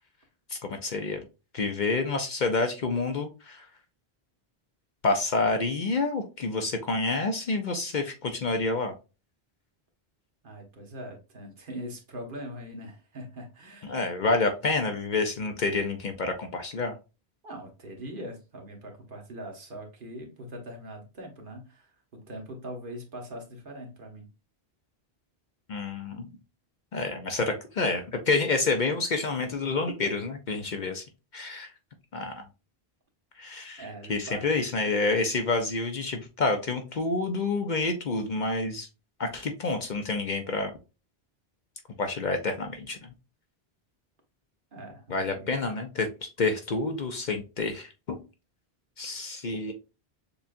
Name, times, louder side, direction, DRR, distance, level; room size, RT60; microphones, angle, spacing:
voice 1, 0.5-1.2 1.5-3.7 5.0-8.9 13.9-16.9 25.7-26.3 26.9-31.0 31.3-31.7 32.1-32.4 33.4-33.8 34.1-38.9 39.2-40.7 42.0-43.1 45.1-47.9 49.0-49.7, left 3 dB, 50° left, 0.7 m, -28 dB
voice 2, 10.4-14.1 17.4-24.3 33.8-34.5 44.7-45.6, equal, 55° right, 1.2 m, -42 dB
6.8 x 2.4 x 2.5 m
omnidirectional pair, 1.1 m